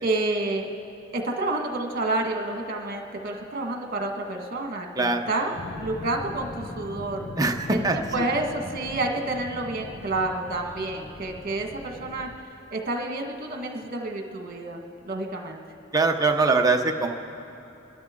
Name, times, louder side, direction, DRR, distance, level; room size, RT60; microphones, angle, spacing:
voice 1, 0.0-0.6 1.1-7.3 7.7-7.8 8.1-12.3 12.7-15.6, right 2 dB, 45° right, 2 dB, 1.5 m, -29 dB
voice 2, 5.0-5.3 7.4-8.2 15.9-17.1, right 3 dB, 20° right, 3 dB, 0.8 m, -23 dB
sound 1, 5.5-12.4, left 2 dB, 40° left, 0.8 m, -40 dB
29.0 x 12.0 x 3.7 m, 3.0 s
head